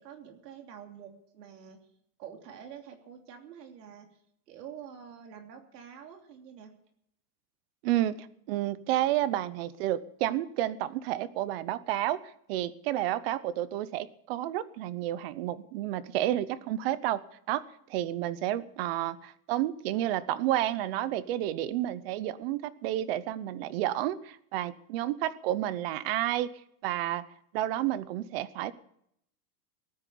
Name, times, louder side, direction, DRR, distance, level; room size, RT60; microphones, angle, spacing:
voice 1, 0.0-1.8 2.2-4.1 4.5-6.7, right 8 dB, 80° right, 4 dB, 3.2 m, -47 dB
voice 2, 7.8-17.6 17.9-26.5 26.8-27.2 27.5-28.7, right 13 dB, 40° right, 17 dB, 0.8 m, -30 dB
18.5 x 9.8 x 6.9 m, 0.72 s
supercardioid pair, 170°, 48 cm